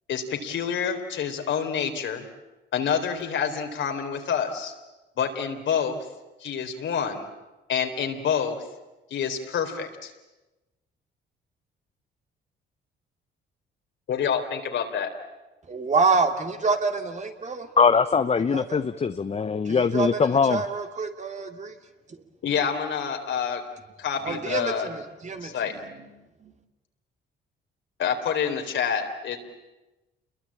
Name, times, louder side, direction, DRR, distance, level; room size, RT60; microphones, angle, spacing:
voice 1, 0.1-2.2 2.7-4.7 5.2-6.0 6.4-7.3 7.7-8.6 9.1-10.1 14.1-15.1 22.4-23.6 24.0-24.9 25.4-25.7 28.0-29.4, left 7 dB, 70° left, 5 dB, 3.9 m, -27 dB
voice 2, 15.7-17.7 18.5-18.8 19.6-21.8 22.1-22.2 24.2-26.1 26.4-26.5, right 4 dB, 35° right, 5 dB, 2.8 m, -27 dB
voice 3, 17.8-20.6, left 5 dB, 30° left, 10 dB, 0.9 m, -22 dB
29.0 x 22.0 x 8.7 m, 1.1 s
cardioid pair, 90°, 20 cm